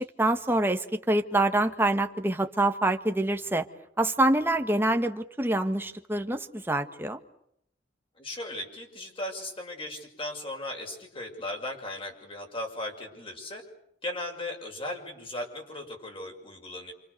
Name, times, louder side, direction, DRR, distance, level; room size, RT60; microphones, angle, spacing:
voice 1, 0.0-3.6 4.0-7.2, right 1 dB, 10° right, 6 dB, 1.7 m, -26 dB
voice 2, 8.2-13.6 14.0-16.9, left 1 dB, 30° left, 2 dB, 6.5 m, -37 dB
29.5 x 27.0 x 6.7 m, 0.72 s
head